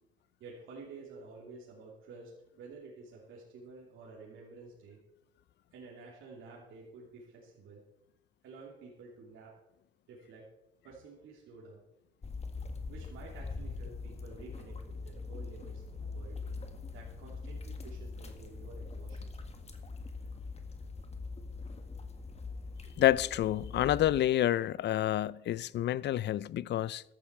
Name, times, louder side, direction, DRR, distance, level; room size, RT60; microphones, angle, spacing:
voice 1, 0.4-2.3 2.6-5.0 5.7-7.8 8.4-9.6 10.1-10.5 10.8-11.8 12.9-16.4 16.9-19.3, right 4 dB, 80° right, 2.9 m, -51 dB
sound 1, 12.2-24.2, left 4 dB, 35° left, 1.8 m, -42 dB
voice 2, 23.0-27.0, left 12 dB, 60° left, 0.5 m, -28 dB
14.5 x 11.5 x 4.6 m
cardioid pair, 90°, 20 cm